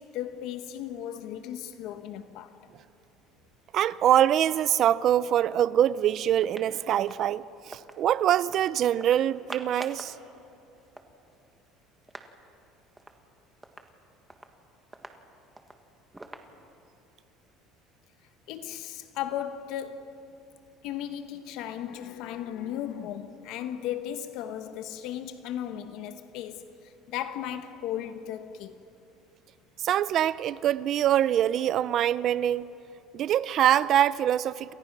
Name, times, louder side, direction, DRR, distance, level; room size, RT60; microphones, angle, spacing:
voice 1, 0.0-2.6 18.5-20.2 20.8-28.7, left 10 dB, 65° left, 1.1 m, -36 dB
voice 2, 3.7-10.1 29.8-32.7 33.1-34.7, right 11 dB, 45° right, 0.5 m, -24 dB
sound 1, 6.4-8.0 8.4-8.7 9.0-10.2 10.5-10.6 10.8-12.3 12.6-12.7 13.0-13.2 13.6-16.9, right 2 dB, 5° right, 1.6 m, -46 dB
28.5 x 27.5 x 6.0 m
cardioid pair, 155°, 0 cm